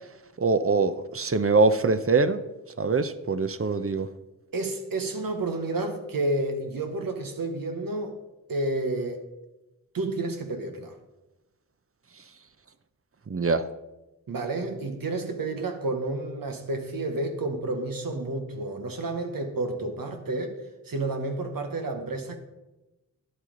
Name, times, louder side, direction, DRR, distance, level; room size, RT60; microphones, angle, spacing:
voice 1, 0.4-2.4 2.8-4.1 13.3-13.7, right 4 dB, 40° right, 0.7 m, -23 dB
voice 2, 4.5-8.1 8.5-9.2 9.9-10.9 14.3-20.6 20.9-22.4, right 2 dB, 80° right, 1.2 m, -30 dB
10.5 x 7.9 x 3.9 m
cardioid pair, 45°, 34 cm